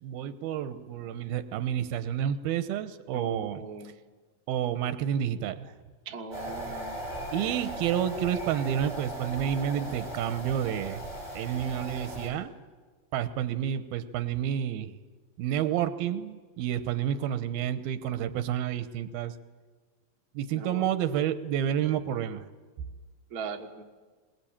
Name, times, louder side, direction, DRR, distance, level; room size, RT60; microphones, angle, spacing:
voice 1, 0.0-3.6 4.5-5.7 7.3-11.0 11.3-12.5 13.1-14.9 15.4-19.3 20.3-22.5, right 10 dB, 90° right, 12 dB, 2.9 m, -30 dB
voice 2, 3.1-3.9 6.0-7.0 20.5-20.9 23.3-23.8, right 4 dB, 60° right, 3 dB, 0.9 m, -39 dB
sound 1, 6.3-12.3, right 1 dB, 15° right, 7.8 m, -38 dB
21.5 x 21.0 x 8.7 m, 1.4 s
omnidirectional pair, 4.2 m